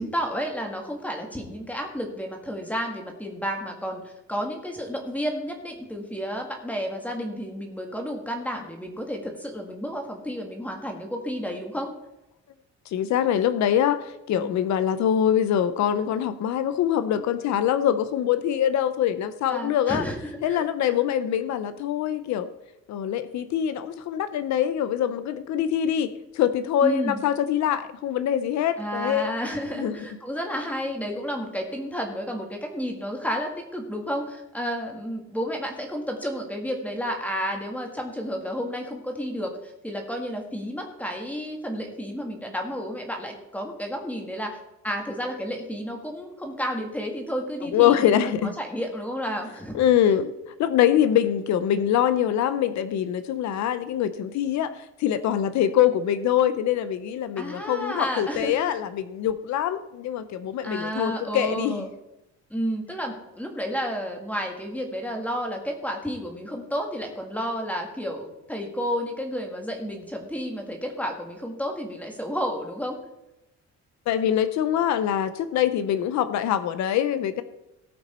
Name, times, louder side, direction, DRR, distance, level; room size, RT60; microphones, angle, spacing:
voice 1, 0.0-11.9 14.3-14.5 19.5-20.6 26.8-27.2 28.8-44.6 44.8-48.1 48.4-49.8 57.4-58.8 60.6-61.9 62.5-73.0, equal, 5° left, 2 dB, 1.8 m, -31 dB
voice 2, 12.9-20.0 20.4-22.5 22.9-29.3 29.8-30.0 47.7-48.5 49.7-50.3 50.6-61.9 74.1-77.4, left 10 dB, 70° left, 12 dB, 0.8 m, -24 dB
17.5 x 6.1 x 4.3 m, 0.90 s
cardioid pair, 160°, 29 cm